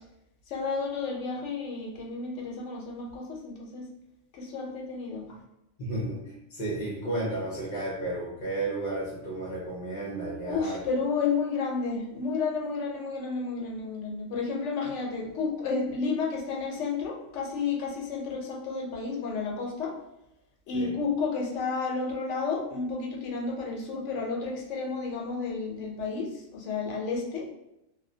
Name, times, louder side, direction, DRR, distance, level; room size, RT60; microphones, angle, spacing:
voice 1, 0.5-3.9 4.3-5.2 10.5-19.9 20.7-27.5, left 4 dB, 80° left, 0 dB, 0.9 m, -31 dB
voice 2, 5.8-10.8 20.7-21.0, right 2 dB, 50° left, -6 dB, 0.7 m, -33 dB
2.2 x 2.1 x 2.6 m, 0.86 s
omnidirectional pair, 1.2 m